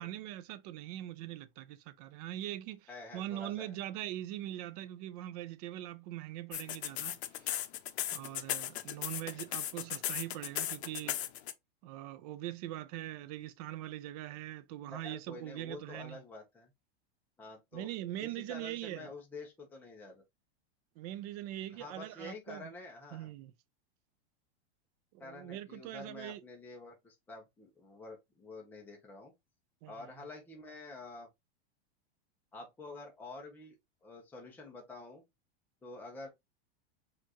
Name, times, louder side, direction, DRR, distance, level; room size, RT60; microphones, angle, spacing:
voice 1, 0.0-7.2 8.1-11.2 11.8-16.2 17.7-19.1 21.0-22.7 23.1-23.5 25.1-26.4 29.8-30.1, right 14 dB, 40° right, 0.4 m, -42 dB
voice 2, 2.9-3.8 14.9-16.7 17.4-17.9 18.2-20.2 21.8-23.3 25.2-29.3 29.9-31.3 32.5-33.7 34.0-35.2 35.8-36.3, left 2 dB, 5° left, 0.6 m, -48 dB
sound 1, 6.5-11.5, left 12 dB, 85° left, 0.6 m, -36 dB
4.3 x 2.5 x 2.8 m
supercardioid pair, 150°, 32 cm